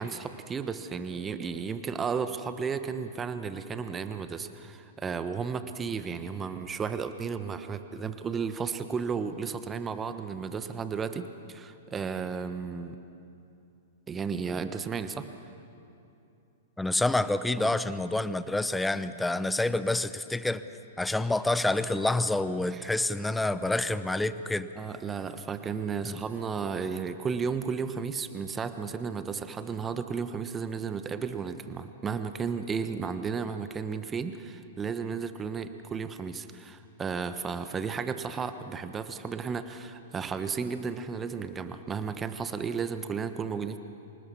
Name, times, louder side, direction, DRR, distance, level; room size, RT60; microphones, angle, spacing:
voice 1, 0.0-13.0 14.1-15.3 17.6-17.7 22.7-22.9 24.8-43.8, right 5 dB, 20° right, 10 dB, 1.2 m, -33 dB
voice 2, 16.8-20.6 21.0-24.7 26.0-26.2, left 2 dB, 5° left, 14 dB, 0.7 m, -28 dB
26.0 x 19.0 x 7.1 m, 2.7 s
hypercardioid pair, 110°, 0 cm